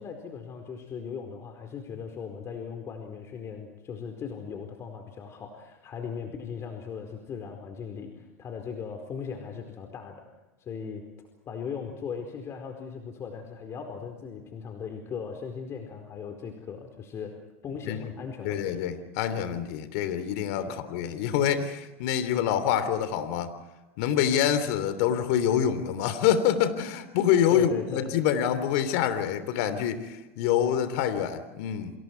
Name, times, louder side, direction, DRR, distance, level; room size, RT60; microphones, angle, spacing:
voice 1, 0.0-10.3 10.6-11.0 11.5-17.4 17.6-18.8 20.7-20.8 27.5-28.1, left 6 dB, 35° left, 4 dB, 4.5 m, -38 dB
voice 2, 18.4-23.5 24.0-31.9, left 9 dB, 65° left, 11 dB, 3.3 m, -26 dB
29.0 x 27.5 x 4.7 m, 1.1 s
hypercardioid pair, 95°, 8 cm